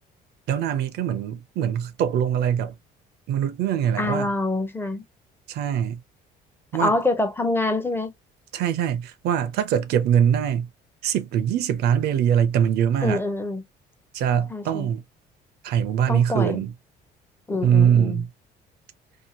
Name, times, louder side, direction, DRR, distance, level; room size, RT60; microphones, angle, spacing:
voice 1, 0.5-2.7 3.3-4.3 5.5-6.0 6.7-7.0 8.5-10.7 11.0-13.2 14.1-15.0 15.6-16.7 17.6-18.3, right 9 dB, 75° right, 0.6 m, -22 dB
voice 2, 4.0-5.0 6.7-8.1 13.0-13.6 14.5-14.9 16.1-16.6 17.5-18.2, left 2 dB, 15° left, 0.6 m, -25 dB
2.8 x 2.3 x 2.8 m
cardioid pair, 110°, 17 cm